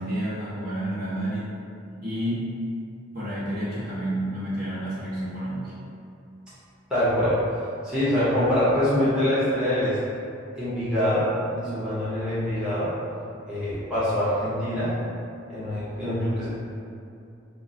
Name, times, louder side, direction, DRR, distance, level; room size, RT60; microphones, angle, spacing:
voice 1, 0.0-1.5 2.0-2.5 3.1-5.7, right 1 dB, 50° right, -10 dB, 1.2 m, -30 dB
voice 2, 6.9-7.4 7.8-10.0 10.6-12.9 13.5-14.9 15.5-16.5, left 1 dB, 5° right, -13 dB, 0.8 m, -24 dB
4.7 x 2.0 x 2.6 m, 2.6 s
head